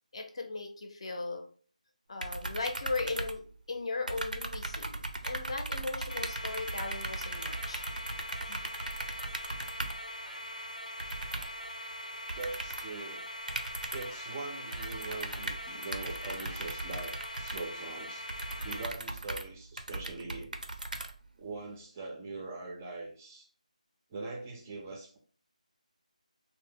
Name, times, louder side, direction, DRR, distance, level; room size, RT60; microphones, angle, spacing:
voice 1, 0.1-1.5 2.1-7.8 8.4-8.6, left 3 dB, 45° left, 4 dB, 0.6 m, -37 dB
sound 1, 2.2-3.8 4.1-10.1 11.0-11.7 12.3-13.0 13.5-14.2 14.7-21.5, right 2 dB, 90° right, 0.4 m, -38 dB
sound 2, 6.1-18.9, equal, 90° left, 0.7 m, -42 dB
voice 2, 12.4-13.2 13.9-18.3 18.6-20.6 21.4-23.5 24.1-25.2, right 3 dB, 15° right, 1 dB, 0.3 m, -42 dB
2.7 x 2.0 x 3.6 m, 0.44 s
figure-of-eight pair, 160°, 4 cm